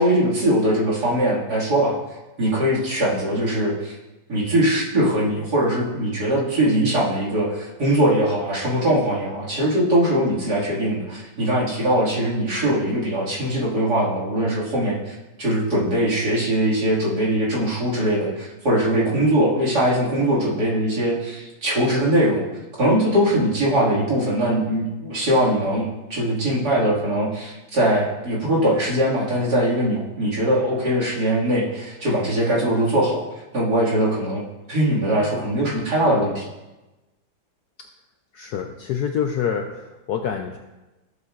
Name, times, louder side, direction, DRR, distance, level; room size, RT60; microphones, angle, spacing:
voice 1, 0.0-2.0 2.4-3.9 4.3-22.4 22.8-33.2 33.5-34.4 34.7-36.5, right 1 dB, 55° right, -6 dB, 2.7 m, -21 dB
voice 2, 38.3-40.6, left 8 dB, 70° left, 4 dB, 0.9 m, -26 dB
13.5 x 7.9 x 2.5 m, 1.1 s
omnidirectional pair, 2.1 m